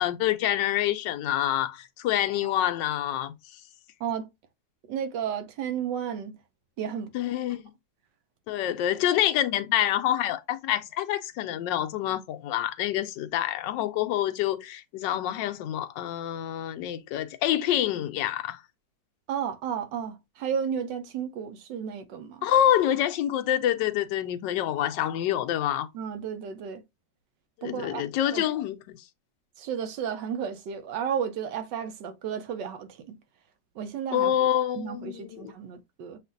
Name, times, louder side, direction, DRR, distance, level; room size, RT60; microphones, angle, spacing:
voice 1, 0.0-3.3 7.1-7.6 8.5-18.6 22.4-25.9 27.6-29.0 34.1-35.5, left 11 dB, 90° left, 1.3 m, -27 dB
voice 2, 4.9-6.4 6.8-7.1 19.3-22.5 25.9-26.8 27.6-28.5 29.6-33.2 33.8-34.3 34.8-36.2, right 8 dB, 90° right, 1.4 m, -33 dB
7.2 x 2.5 x 2.5 m
omnidirectional pair, 1.9 m